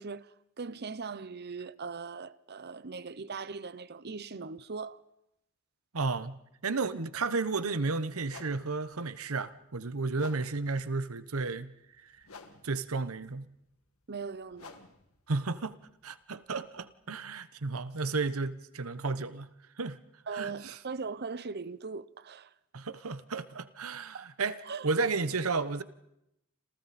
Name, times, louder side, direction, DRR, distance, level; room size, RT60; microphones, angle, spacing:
voice 1, 0.0-5.0 14.1-14.8 20.3-22.5 24.1-24.3 24.6-24.9, right 4 dB, 50° right, 0.8 m, -40 dB
voice 2, 5.9-6.4 6.6-11.7 12.0-12.1 12.6-13.5 15.3-19.5 19.8-20.0 20.3-20.8 22.7-25.8, right 3 dB, 85° right, 1.1 m, -33 dB
sound 1, 7.4-7.6 8.2-17.0, left 4 dB, 90° left, 2.0 m, -55 dB
29.0 x 27.0 x 4.3 m
head